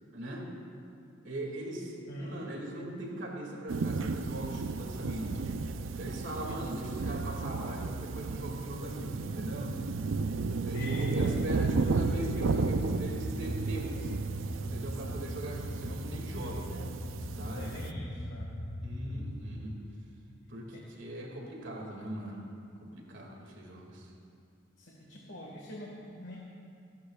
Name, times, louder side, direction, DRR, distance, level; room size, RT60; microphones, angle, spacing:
voice 1, 0.1-0.5 1.2-5.5 6.0-9.8 10.6-14.0 14.6-16.7 17.3-17.7 18.8-19.8 20.5-22.5 22.8-24.1, right 1 dB, 65° right, -1 dB, 2.3 m, -40 dB
voice 2, 2.1-2.4 7.0-7.2 10.7-11.4 17.5-18.5 20.7-20.8 24.8-26.4, equal, 70° left, -3 dB, 1.7 m, -43 dB
sound 1, 3.7-17.9, right 4 dB, 85° right, 0.5 m, -33 dB
sound 2, 11.7-19.3, equal, 30° left, 1.9 m, -40 dB
29.0 x 11.5 x 2.4 m, 2.5 s
head